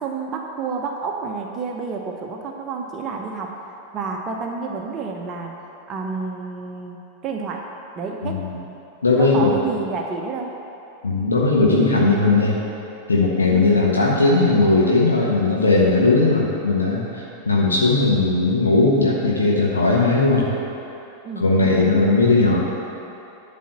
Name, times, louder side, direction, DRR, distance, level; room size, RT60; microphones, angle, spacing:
voice 1, 0.0-3.6 3.9-5.5 5.9-7.7 8.0-8.4 9.2-10.6 13.5-13.7 21.2-21.5, right 4 dB, 30° right, 1 dB, 0.8 m, -29 dB
voice 2, 8.2-8.6 9.0-9.6 11.0-12.6 13.1-20.4 21.4-22.6, left 3 dB, 75° left, -4 dB, 1.2 m, -18 dB
11.0 x 4.2 x 7.3 m, 2.9 s
figure-of-eight pair, 90°, 0 cm